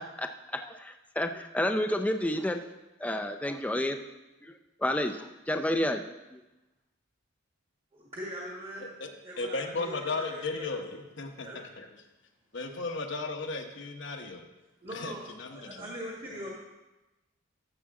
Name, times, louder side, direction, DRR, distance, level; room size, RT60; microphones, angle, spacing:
voice 1, 0.0-2.7 3.0-4.0 4.4-4.5 4.8-6.0 6.3-6.4, left 1 dB, 5° left, 6 dB, 0.4 m, -30 dB
voice 2, 7.9-8.9 9.2-10.7 11.4-11.6 14.8-15.2 15.5-16.5, equal, 30° right, -3 dB, 1.6 m, -41 dB
voice 3, 9.4-11.9 12.5-14.5 14.9-15.9 16.3-16.4, left 3 dB, 55° left, 4 dB, 1.0 m, -35 dB
13.0 x 7.2 x 3.7 m, 1.0 s
head